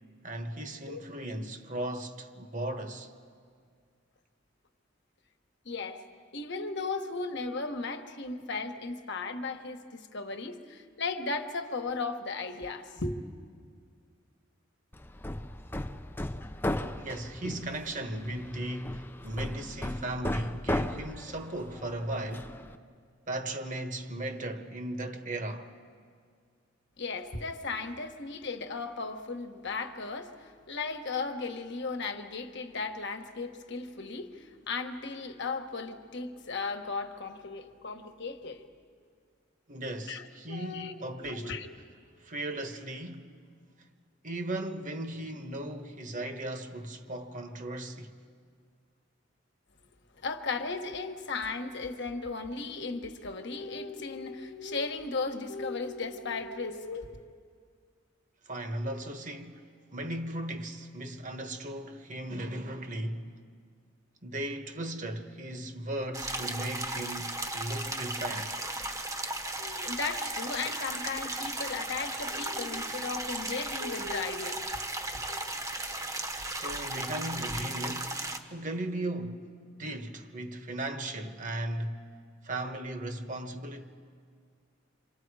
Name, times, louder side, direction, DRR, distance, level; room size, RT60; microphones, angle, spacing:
voice 1, 0.2-3.1 17.0-22.6 23.3-25.7 39.7-41.6 42.2-43.3 44.2-48.1 58.4-63.3 64.2-68.6 76.5-82.1 82.4-83.9, right 1 dB, 40° right, 1.3 m, -37 dB
voice 2, 5.6-6.0 6.3-13.2 27.0-38.6 40.1-41.7 50.2-57.2 69.6-74.7 75.3-75.4, left 4 dB, 60° left, 1.3 m, -36 dB
Hammer, 14.9-22.8, left 1 dB, 10° left, 0.5 m, -36 dB
sound 1, 66.1-78.4, right 2 dB, 15° right, 1.1 m, -36 dB
28.0 x 25.5 x 4.8 m
head